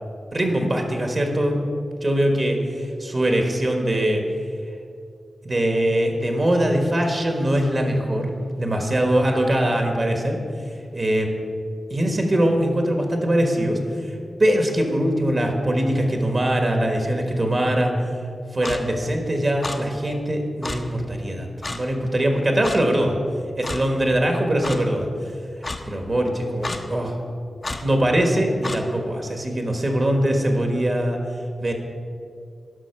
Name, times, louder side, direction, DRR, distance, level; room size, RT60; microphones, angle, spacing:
voice 1, 0.3-1.7 2.0-4.2 5.4-8.3 8.5-10.4 10.9-11.3 11.9-14.1 14.4-17.9 18.5-21.5 21.7-23.2 23.6-25.1 25.9-27.2 27.8-31.2 31.6-31.7, right 1 dB, 40° right, 3 dB, 1.4 m, -22 dB
Clock, 18.6-18.8 19.6-19.8 20.6-20.8 21.6-21.8 22.6-22.8 23.6-23.8 24.6-24.8 25.6-25.8 26.6-26.8 27.6-27.8 28.6-28.8, left 2 dB, 30° left, 0.8 m, -29 dB
11.5 x 5.8 x 5.8 m, 2.3 s
wide cardioid pair, 90°, 0 cm